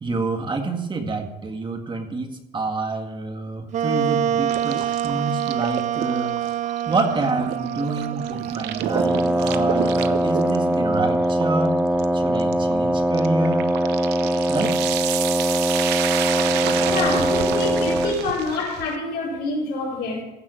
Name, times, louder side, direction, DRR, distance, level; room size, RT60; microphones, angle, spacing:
voice 1, 0.0-11.8 12.1-13.7 14.5-14.8, right 3 dB, 30° right, 5 dB, 1.9 m, -27 dB
Wind instrument woodwind instrument, 3.7-11.1, right 11 dB, 45° right, 0.4 m, -27 dB
sound 1, 4.5-19.0, right 12 dB, 90° right, 0.8 m, -30 dB
Wind instrument woodwind instrument 2, 8.9-18.2, right 1 dB, 5° right, 1.1 m, -22 dB
voice 2, 16.9-20.2, left 3 dB, 85° left, -3 dB, 4.7 m, -26 dB
15.5 x 6.0 x 8.3 m, 0.90 s
cardioid pair, 110°, 17 cm